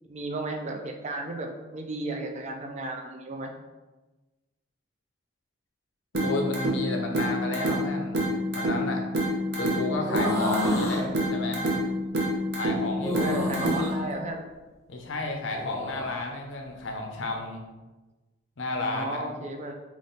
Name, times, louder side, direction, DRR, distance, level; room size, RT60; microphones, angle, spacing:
voice 1, 0.1-3.5 10.9-11.2 13.2-14.4 18.9-19.7, right 2 dB, 35° right, 3 dB, 0.4 m, -34 dB
sound 1, 6.1-14.1, equal, 55° right, 0.8 m, -28 dB
voice 2, 6.2-9.0 9.6-11.1 11.3-11.7 12.6-13.3 14.9-17.6 18.6-19.2, left 2 dB, 70° left, 2 dB, 0.6 m, -32 dB
sound 2, 10.0-11.0 13.0-14.0 15.5-16.1, left 1 dB, 15° left, 0.7 m, -30 dB
3.6 x 2.5 x 3.9 m, 1.2 s
head